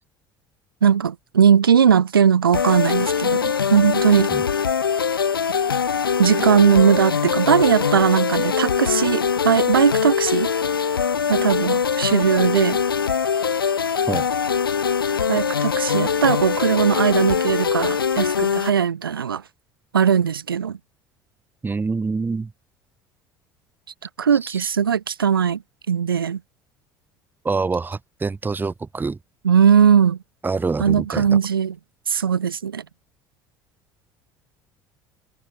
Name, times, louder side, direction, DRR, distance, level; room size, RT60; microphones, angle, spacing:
voice 1, 0.8-4.3 6.2-10.5 11.3-12.8 15.3-19.4 19.9-20.8 24.2-25.6 25.9-26.4 29.4-30.2 30.8-31.8 32.1-32.8, right 7 dB, 80° right, 0.7 m, -19 dB
sound 1, 2.5-18.7, left 6 dB, 80° left, 1.5 m, -22 dB
voice 2, 21.6-22.5 24.4-24.6 27.4-29.2 30.4-31.2, right 4 dB, 15° right, 1.1 m, -25 dB
figure-of-eight pair, 60°, 12 cm